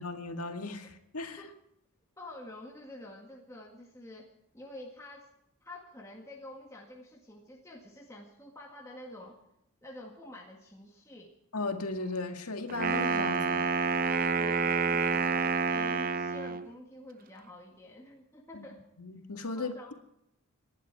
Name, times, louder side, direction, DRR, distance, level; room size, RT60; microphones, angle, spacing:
voice 1, 0.0-1.4 11.5-13.7 18.5-18.7 19.0-19.9, left 3 dB, 90° left, 2.0 m, -36 dB
voice 2, 2.2-4.3 4.5-5.3 5.6-9.4 9.8-11.3 14.3-18.8 19.6-19.9, left 1 dB, 15° left, 1.8 m, -48 dB
Wind instrument woodwind instrument, 12.7-16.7, right 5 dB, 40° right, 0.6 m, -28 dB
27.0 x 11.5 x 4.7 m
head